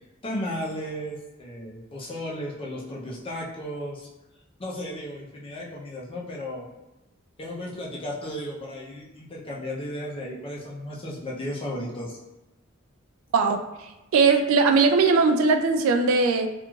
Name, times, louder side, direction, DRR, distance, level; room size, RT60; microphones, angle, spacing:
voice 1, 0.2-4.1 4.6-6.7 7.4-12.2, left 1 dB, 25° left, -4 dB, 0.5 m, -34 dB
voice 2, 14.1-16.5, right 4 dB, 85° right, 6 dB, 0.3 m, -19 dB
3.0 x 2.4 x 2.3 m, 1.0 s
head